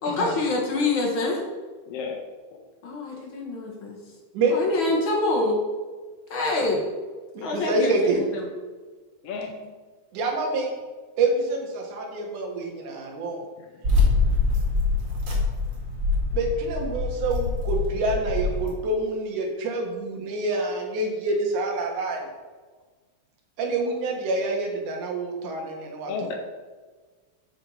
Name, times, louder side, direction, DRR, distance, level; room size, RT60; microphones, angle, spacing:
voice 1, 0.0-1.4 2.8-4.0 4.5-5.6 6.3-6.8 7.4-8.5, left 2 dB, 50° left, -1 dB, 1.8 m, -26 dB
voice 2, 1.9-2.2 2.5-2.6 9.2-9.5 13.6-13.8 26.1-26.4, left 5 dB, 70° left, 3 dB, 1.5 m, -33 dB
voice 3, 7.4-8.2 10.1-10.7 11.2-13.4 13.9-14.0 16.3-22.3 23.6-26.1, right 2 dB, 90° right, 1 dB, 2.7 m, -27 dB
sound 1, 13.8-18.7, left 3 dB, 40° right, 2.2 m, -24 dB
7.7 x 4.4 x 5.4 m, 1.4 s
omnidirectional pair, 3.4 m